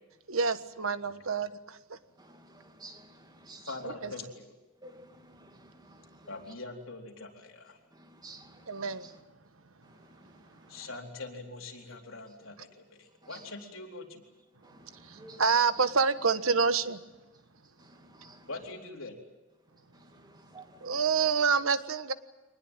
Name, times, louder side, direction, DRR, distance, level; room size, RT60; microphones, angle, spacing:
voice 1, 0.3-2.0 3.8-4.1 8.7-9.0 15.0-17.0 20.8-22.1, right 5 dB, 85° right, 1.4 m, -28 dB
voice 2, 2.2-3.7 4.8-6.2 8.0-8.8 10.1-10.2 14.6-14.8 15.2-15.4 18.1-18.4 20.5-20.6, right 2 dB, 20° right, 2.5 m, -52 dB
voice 3, 3.6-4.5 6.3-7.8 10.7-14.2 18.5-19.2, left 3 dB, 75° left, 4.2 m, -43 dB
25.0 x 19.5 x 9.1 m
head